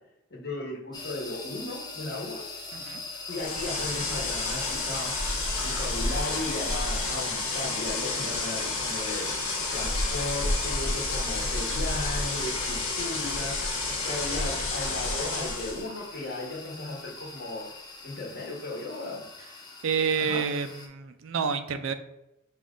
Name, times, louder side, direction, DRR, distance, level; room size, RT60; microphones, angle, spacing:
voice 1, 0.3-2.4 3.3-5.3 5.6-9.3 9.7-13.7 14.0-17.7 18.0-19.2 20.1-20.4, left 2 dB, 50° left, -2 dB, 1.3 m, -36 dB
sound 1, 0.9-20.9, left 3 dB, 20° left, 0.6 m, -42 dB
voice 2, 2.7-3.0 19.8-21.9, right 6 dB, 65° right, 9 dB, 0.4 m, -28 dB
sound 2, 3.3-15.8, left 2 dB, 75° left, 1.2 m, -30 dB
5.4 x 2.4 x 3.7 m, 0.86 s
head